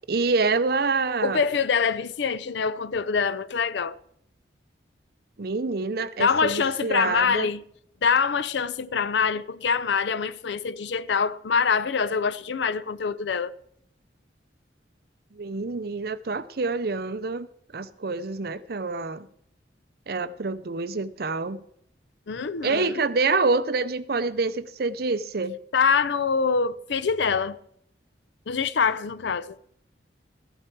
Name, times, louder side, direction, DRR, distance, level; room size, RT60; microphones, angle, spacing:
voice 1, 0.1-1.4 5.4-7.5 15.3-17.5 17.7-19.3 20.1-21.6 22.6-25.6, right 3 dB, 55° right, 0.6 m, -26 dB
voice 2, 1.2-4.0 6.2-7.6 8.0-13.5 22.3-22.9 25.7-27.6 28.5-29.6, left 5 dB, 70° left, 0.5 m, -25 dB
14.0 x 11.0 x 4.6 m
head